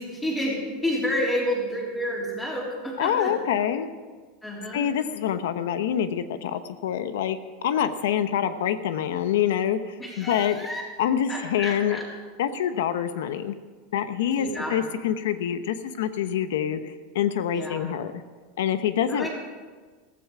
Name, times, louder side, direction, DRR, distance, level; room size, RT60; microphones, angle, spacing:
voice 1, 0.0-3.3 4.4-4.9 10.0-10.8 11.3-12.1 14.3-14.8 17.5-17.8 19.1-19.3, equal, 10° left, -3 dB, 3.5 m, -30 dB
voice 2, 3.0-3.9 4.7-10.6 11.0-12.0 12.4-13.6 13.9-18.1 18.6-19.3, left 9 dB, 85° left, 11 dB, 0.9 m, -26 dB
15.5 x 15.0 x 4.9 m, 1.4 s
supercardioid pair, 170°, 0 cm